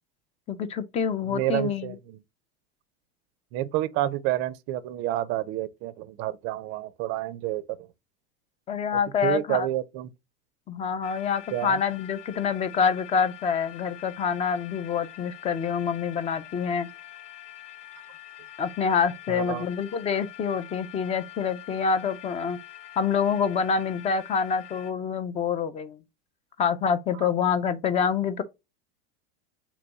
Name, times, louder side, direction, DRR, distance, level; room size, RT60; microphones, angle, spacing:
voice 1, 0.5-2.0 8.7-9.7 10.7-16.9 18.6-22.6 23.0-26.0 26.6-28.4, left 6 dB, 20° left, 0.4 m, -26 dB
voice 2, 1.3-2.2 3.5-7.9 8.9-10.1 11.5-11.8 19.3-19.6 27.2-27.3, right 14 dB, 40° right, 0.4 m, -29 dB
sound 1, 11.0-24.9, left 14 dB, 55° left, 0.7 m, -45 dB
3.4 x 3.0 x 3.8 m
supercardioid pair, 130°, 32 cm